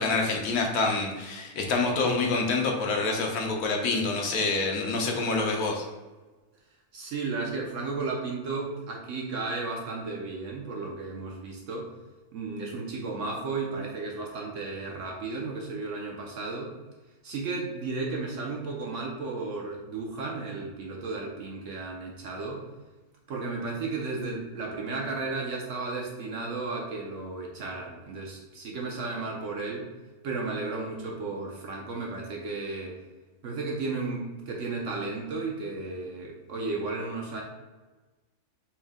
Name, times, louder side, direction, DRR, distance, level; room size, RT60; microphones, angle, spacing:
voice 1, 0.0-5.8, left 3 dB, 75° left, 1 dB, 1.2 m, -27 dB
voice 2, 6.9-11.9 12.3-16.7 17.2-22.6 23.3-29.9 30.2-33.0 33.4-37.4, right 3 dB, 65° right, -1 dB, 0.8 m, -34 dB
4.4 x 2.1 x 3.5 m, 1.2 s
omnidirectional pair, 1.6 m